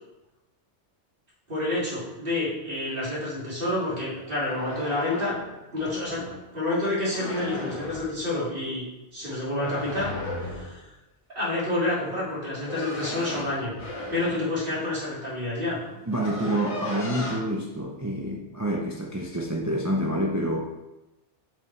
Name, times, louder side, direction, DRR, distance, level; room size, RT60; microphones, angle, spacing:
voice 1, 1.5-5.4 5.7-6.2 6.5-8.9 9.1-10.8 11.3-13.7 14.1-15.8, left 2 dB, 50° right, -7 dB, 2.6 m, -29 dB
sound 1, 4.3-6.4 7.1-8.1 9.6-10.8 12.3-14.6 15.4-15.5 15.8-17.4, left 1 dB, 30° left, 1.0 m, -35 dB
voice 2, 16.1-20.6, right 1 dB, 20° right, -1 dB, 0.5 m, -28 dB
7.1 x 5.3 x 3.2 m, 1.0 s
omnidirectional pair, 1.2 m